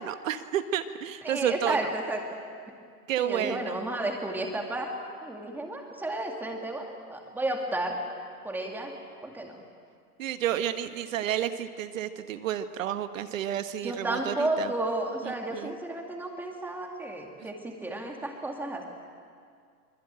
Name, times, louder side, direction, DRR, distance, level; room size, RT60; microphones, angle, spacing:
voice 1, 0.0-1.8 3.1-3.8 10.2-14.7 15.2-15.7, right 10 dB, 55° right, 9 dB, 1.5 m, -31 dB
voice 2, 1.2-2.2 3.2-4.9 5.2-8.0 8.4-9.0 9.2-9.6 13.8-18.8, right 1 dB, 5° right, 1 dB, 2.3 m, -32 dB
24.5 x 21.5 x 9.0 m, 2.2 s
hypercardioid pair, 160°, 46 cm